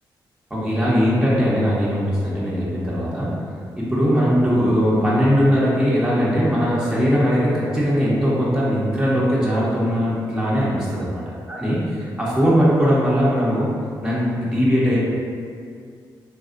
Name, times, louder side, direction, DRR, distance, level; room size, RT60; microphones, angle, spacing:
voice 1, 0.5-3.4 3.8-11.2 11.5-13.7 14.0-15.1, equal, 5° right, -8 dB, 0.9 m, -20 dB
3.9 x 2.4 x 2.5 m, 2.3 s
supercardioid pair, 45°, 9 cm